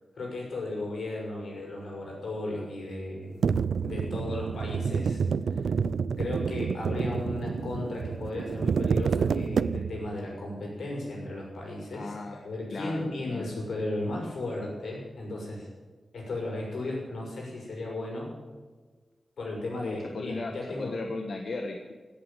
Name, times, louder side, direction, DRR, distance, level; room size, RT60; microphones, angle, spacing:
voice 1, 0.2-3.3 3.8-5.2 5.5-5.7 6.2-15.7 16.1-18.3 19.4-20.9, left 2 dB, 85° left, -1 dB, 6.4 m, -35 dB
sound 1, 3.4-10.1, right 6 dB, 90° right, 0.4 m, -28 dB
voice 2, 11.9-12.4 12.7-13.5 19.8-21.9, left 3 dB, 65° left, 3 dB, 1.4 m, -36 dB
17.0 x 8.6 x 9.2 m, 1.4 s
wide cardioid pair, 110°, 0 cm